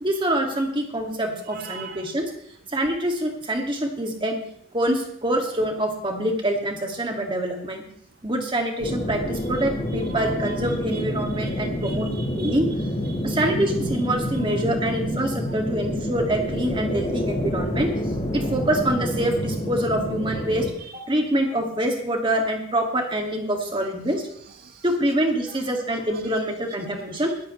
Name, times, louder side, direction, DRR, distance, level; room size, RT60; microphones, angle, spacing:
voice 1, 0.0-2.3 2.7-4.4 4.7-7.8 8.2-12.7 13.2-17.9 18.3-20.7 21.1-24.2 24.8-27.3, right 1 dB, 25° right, 2 dB, 2.2 m, -25 dB
voice 2, 1.5-2.1 9.5-11.1 11.4-13.3 14.5-14.6 20.8-21.0 24.5-24.8 25.5-25.6 26.1-26.2 27.1-27.5, right 6 dB, 45° right, 10 dB, 0.5 m, -43 dB
sound 1, 8.8-20.7, left 1 dB, 30° left, 1.9 m, -28 dB
20.0 x 14.0 x 3.2 m, 0.68 s
head